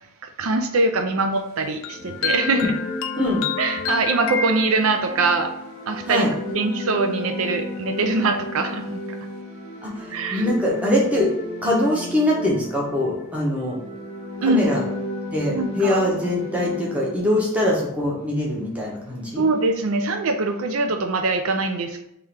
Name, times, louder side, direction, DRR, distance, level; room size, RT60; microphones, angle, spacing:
voice 1, 0.4-2.7 3.6-5.5 5.9-9.2 10.1-10.5 14.4-14.6 15.5-16.0 19.4-22.0, right 3 dB, 80° right, 7 dB, 0.5 m, -23 dB
sound 1, 1.8-5.3, left 4 dB, 75° left, 0.4 m, -29 dB
sound 2, 1.9-17.6, left 1 dB, 30° left, 0.7 m, -33 dB
voice 2, 9.8-11.3 11.6-13.8 14.5-14.8 15.3-19.4, left 1 dB, 5° right, -4 dB, 1.0 m, -23 dB
3.7 x 3.0 x 4.8 m, 0.79 s
head